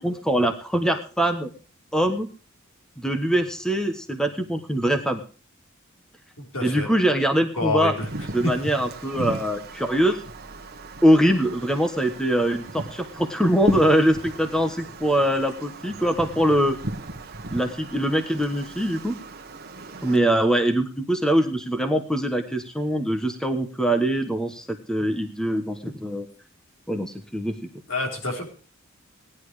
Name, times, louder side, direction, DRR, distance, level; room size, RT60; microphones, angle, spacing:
voice 1, 0.0-1.5 1.9-2.3 3.0-5.2 6.6-7.9 8.3-10.2 11.0-16.8 17.5-19.2 20.0-26.3 26.9-27.5, right 1 dB, 5° left, 7 dB, 1.2 m, -23 dB
voice 2, 6.4-6.9 7.6-8.1 27.9-28.5, left 2 dB, 75° left, 2 dB, 4.7 m, -27 dB
Wind, 7.8-20.2, right 1 dB, 50° right, 1.5 m, -36 dB
17.5 x 11.0 x 4.9 m, 0.37 s
head